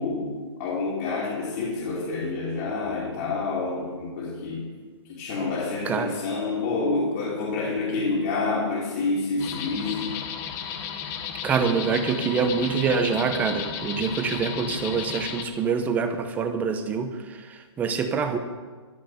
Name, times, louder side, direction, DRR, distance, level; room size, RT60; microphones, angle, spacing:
voice 1, 0.0-4.7 5.0-10.2, left 3 dB, 40° left, -5 dB, 3.0 m, -28 dB
voice 2, 5.8-6.2 11.4-18.4, right 5 dB, 10° right, 7 dB, 0.9 m, -25 dB
sound 1, 9.4-15.4, left 7 dB, 20° left, 0.8 m, -34 dB
13.5 x 6.6 x 9.3 m, 1.4 s
hypercardioid pair, 155°, 15 cm